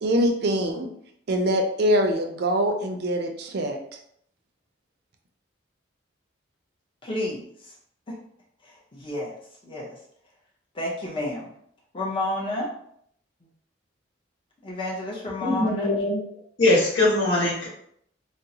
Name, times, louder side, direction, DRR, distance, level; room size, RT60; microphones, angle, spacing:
voice 1, 0.0-0.9 1.3-3.8, equal, 55° right, 4 dB, 0.4 m, -23 dB
voice 2, 7.0-7.7 8.1-8.2 8.6-9.3 9.6-9.9 10.7-11.5 11.9-12.7 14.6-15.9, left 1 dB, 25° left, -4 dB, 0.6 m, -31 dB
voice 3, 15.4-16.2 16.6-17.7, left 2 dB, 65° left, -6 dB, 1.3 m, -21 dB
3.7 x 2.0 x 2.7 m, 0.68 s
head